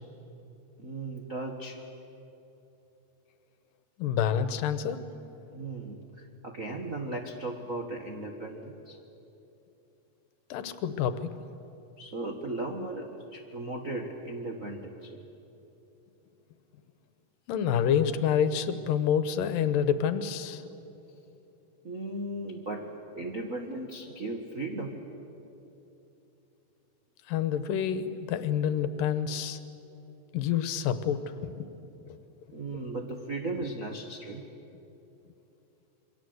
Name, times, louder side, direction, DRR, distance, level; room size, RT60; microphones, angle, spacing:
voice 1, 0.8-1.8 5.5-9.0 12.0-15.2 21.8-22.9 23.1-25.0 32.5-34.5, right 2 dB, 50° right, 0 dB, 0.9 m, -36 dB
voice 2, 4.0-5.0 10.5-11.4 17.5-20.6 27.3-29.6 30.3-31.7, left 8 dB, 80° left, 11 dB, 2.7 m, -28 dB
28.0 x 23.5 x 7.9 m, 3.0 s
omnidirectional pair, 3.9 m